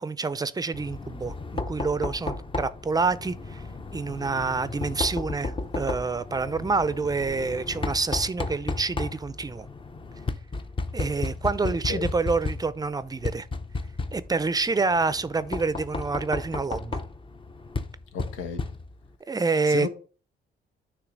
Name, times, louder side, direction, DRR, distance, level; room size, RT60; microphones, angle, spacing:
voice 1, 0.0-3.6 3.9-9.7 10.9-13.5 14.1-17.0 19.3-19.9, right 4 dB, 20° right, 0.5 m, -27 dB
Knock, 0.7-19.2, left 3 dB, 25° left, 0.7 m, -34 dB
voice 2, 18.1-18.6 19.7-19.9, left 6 dB, 85° left, 1.2 m, -32 dB
9.2 x 3.2 x 5.1 m
cardioid pair, 90°, 20 cm